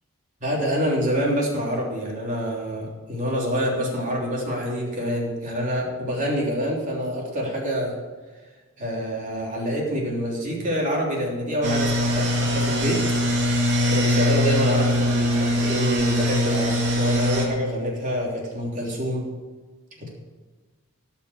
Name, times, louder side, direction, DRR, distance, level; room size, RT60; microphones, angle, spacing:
voice 1, 0.4-8.0 8.8-13.0 13.9-19.3 20.0-20.1, equal, 40° right, -2 dB, 3.3 m, -26 dB
sound 1, 11.6-17.5, left 1 dB, 60° right, 3.0 m, -22 dB
17.0 x 5.9 x 7.2 m, 1.3 s
head